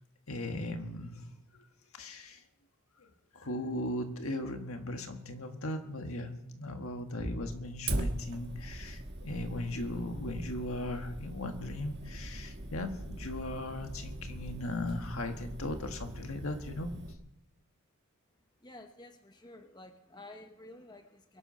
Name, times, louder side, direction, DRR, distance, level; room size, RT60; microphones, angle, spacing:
voice 1, 0.3-1.7 1.9-2.4 3.0-16.9, left 1 dB, 70° left, 5 dB, 1.7 m, -38 dB
Bass drum, 7.2-8.6, equal, 5° right, 2.0 m, -44 dB
Fire, 7.9-17.1, right 1 dB, 50° right, 1.4 m, -40 dB
voice 2, 18.6-21.4, left 2 dB, 20° left, 6 dB, 0.8 m, -51 dB
23.0 x 7.8 x 5.6 m, 0.79 s
head